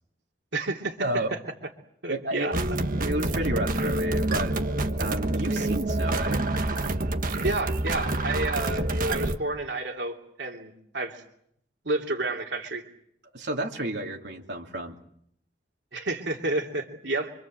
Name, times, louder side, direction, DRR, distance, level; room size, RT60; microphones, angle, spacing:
voice 1, 0.5-1.4 2.0-2.5 7.4-11.2 11.8-12.8 15.9-17.3, right 2 dB, 90° right, 2 dB, 2.8 m, -30 dB
voice 2, 2.1-2.6 2.9-4.6 5.0-6.5 13.3-14.9, right 1 dB, 75° right, 0 dB, 2.9 m, -31 dB
sound 1, 2.5-9.4, right 2 dB, 50° right, 1.4 m, -27 dB
27.0 x 25.0 x 7.8 m, 0.71 s
head